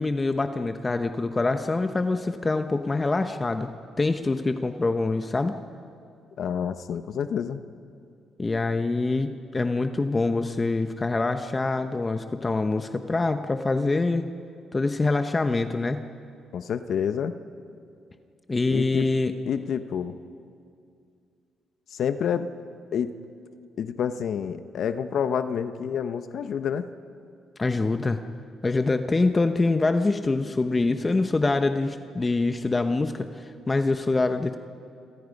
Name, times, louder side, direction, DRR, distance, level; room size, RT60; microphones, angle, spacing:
voice 1, 0.0-3.7 4.0-5.6 8.4-14.3 14.7-16.0 18.5-19.3 27.6-28.2 28.6-34.6, left 3 dB, 25° left, 7 dB, 1.0 m, -25 dB
voice 2, 6.4-7.6 16.5-17.3 18.7-19.1 19.5-20.2 21.9-22.5 22.9-23.1 23.8-26.9, left 8 dB, 65° left, 10 dB, 0.9 m, -28 dB
28.5 x 26.5 x 5.4 m, 2.4 s
cardioid pair, 90°, 0 cm